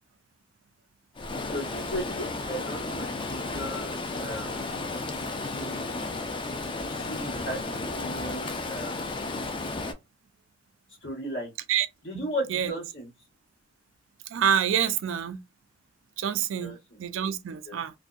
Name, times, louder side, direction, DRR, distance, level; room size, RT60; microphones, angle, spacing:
Stream, 1.2-9.9, left 3 dB, 25° left, 0.4 m, -33 dB
voice 1, 1.5-4.8 5.4-5.8 6.8-9.1 11.0-11.5 12.0-13.1 16.6-17.0 17.6-17.8, equal, 65° left, 1.3 m, -36 dB
voice 2, 14.3-15.4 16.2-16.7 17.0-17.9, right 9 dB, 75° right, 0.4 m, -27 dB
2.6 x 2.1 x 2.3 m
head